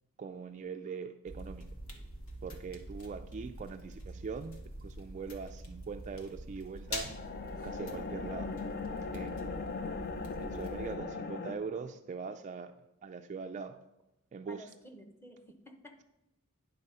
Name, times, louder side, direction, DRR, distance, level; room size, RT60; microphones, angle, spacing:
voice 1, 0.2-1.6 2.4-7.1 7.6-8.5 9.1-9.6 10.4-12.7 13.0-13.8 14.3-14.7, right 5 dB, 35° right, 7 dB, 0.3 m, -42 dB
sound 1, 1.3-11.0, equal, 70° left, 1.3 m, -45 dB
sound 2, 6.9-11.5, left 4 dB, 45° left, 0.5 m, -39 dB
voice 2, 14.5-16.0, equal, 10° left, 4 dB, 0.8 m, -52 dB
9.8 x 4.1 x 5.4 m, 0.91 s
head